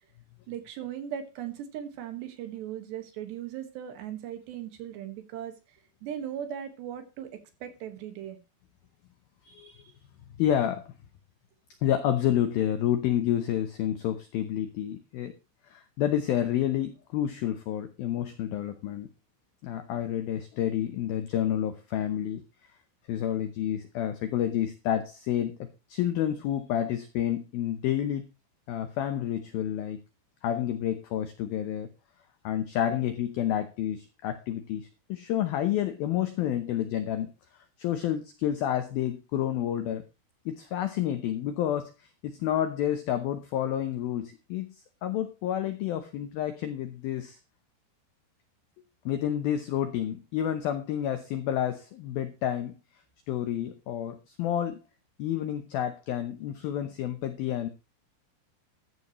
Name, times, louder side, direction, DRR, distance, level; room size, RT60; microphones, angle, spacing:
voice 1, 0.5-5.5 6.0-8.4, right 10 dB, 70° right, 7 dB, 3.5 m, -38 dB
voice 2, 9.5-9.9 10.4-10.9 11.8-15.3 15.7-19.1 19.6-22.4 23.1-28.3 28.7-30.0 30.4-31.9 32.4-37.3 37.8-40.0 40.5-41.9 42.2-44.7 45.0-47.4 49.1-52.7 53.3-54.8 55.2-57.7, left 11 dB, 80° left, 9 dB, 2.1 m, -29 dB
14.0 x 12.5 x 3.1 m, 0.28 s
omnidirectional pair, 5.6 m